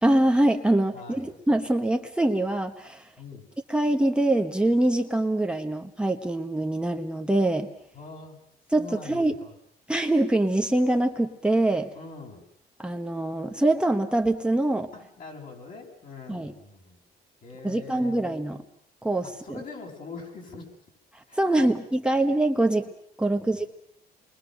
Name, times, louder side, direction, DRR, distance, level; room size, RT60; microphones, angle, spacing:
voice 1, 0.0-3.1 3.7-7.7 8.7-9.3 9.9-11.9 12.8-14.9 16.3-16.5 17.6-18.6 19.0-19.6 21.1-22.9 23.2-23.7, right 1 dB, 5° right, 4 dB, 1.3 m, -24 dB
voice 2, 0.9-1.4 3.2-3.5 7.9-8.4 8.7-9.5 11.9-12.4 14.9-17.0 17.4-18.2 19.2-20.7 21.3-21.7 23.2-23.7, left 4 dB, 50° left, 1 dB, 7.9 m, -43 dB
29.0 x 22.5 x 6.5 m, 0.71 s
cardioid pair, 110°, 17 cm